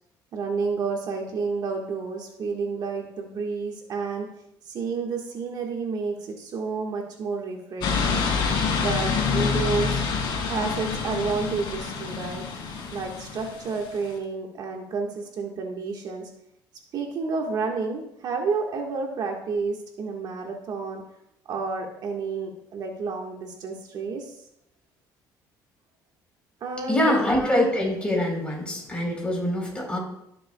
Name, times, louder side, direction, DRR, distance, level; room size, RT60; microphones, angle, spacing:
voice 1, 0.3-4.3 4.6-8.2 8.8-10.0 10.4-12.4 12.9-16.3 16.9-21.0 21.5-24.3 26.6-27.1, right 4 dB, 55° right, 2 dB, 1.5 m, -30 dB
sound 1, 7.8-14.1, left 5 dB, 70° left, 2.5 m, -27 dB
voice 2, 26.9-30.0, left 1 dB, 15° left, -1 dB, 3.8 m, -24 dB
16.5 x 6.9 x 2.3 m, 0.79 s
cardioid pair, 105°, 8 cm